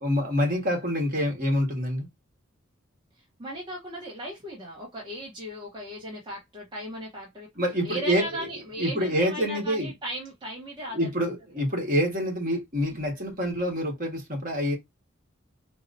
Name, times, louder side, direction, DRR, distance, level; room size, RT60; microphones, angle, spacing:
voice 1, 0.0-2.1 7.5-8.3 8.8-9.9 10.9-14.8, equal, 45° right, 1.6 m, -26 dB
voice 2, 3.2-7.5 7.8-11.3, right 1 dB, 25° right, 1.0 m, -37 dB
4.5 x 2.1 x 2.6 m
head